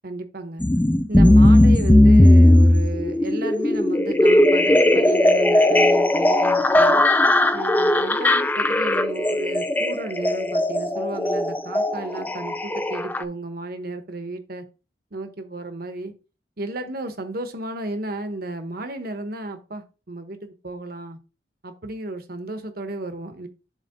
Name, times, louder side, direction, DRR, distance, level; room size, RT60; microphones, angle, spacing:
voice 1, 0.0-0.6 1.1-7.0 7.5-14.6 15.1-16.1 16.6-21.2 21.6-23.5, right 2 dB, 55° right, 8 dB, 1.0 m, -33 dB
sound 1, 0.6-13.2, left 1 dB, 10° left, 0.4 m, -17 dB
7.4 x 3.2 x 5.1 m, 0.32 s
head